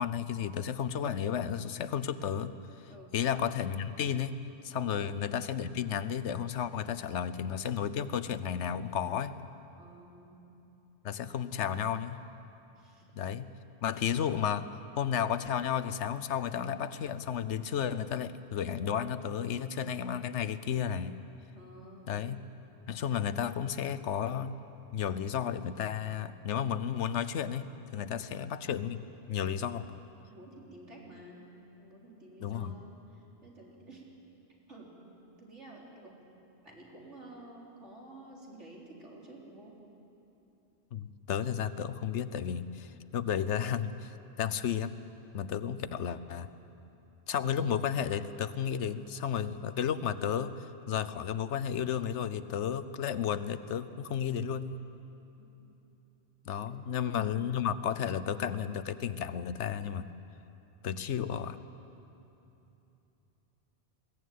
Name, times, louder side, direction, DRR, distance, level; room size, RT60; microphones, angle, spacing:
voice 1, 0.0-2.5 3.1-4.4 4.6-9.3 11.0-12.2 13.1-13.5 13.8-21.2 22.1-22.4 22.9-24.6 24.9-29.0 29.3-30.0 32.4-32.8 40.9-44.1 44.4-45.0 45.3-46.5 47.3-50.5 50.9-54.8 56.5-60.0 60.8-61.6, left 8 dB, 80° left, 13 dB, 1.1 m, -33 dB
voice 2, 9.8-10.4 12.8-13.1 21.5-22.2 28.0-28.3 30.3-31.5 31.8-34.0 34.7-35.0 35.4-36.2 36.6-39.7 45.5-45.7 55.4-55.5 56.7-56.8, right 1 dB, 80° right, -3 dB, 4.3 m, -51 dB
21.5 x 17.0 x 9.3 m, 2.9 s
omnidirectional pair, 1.2 m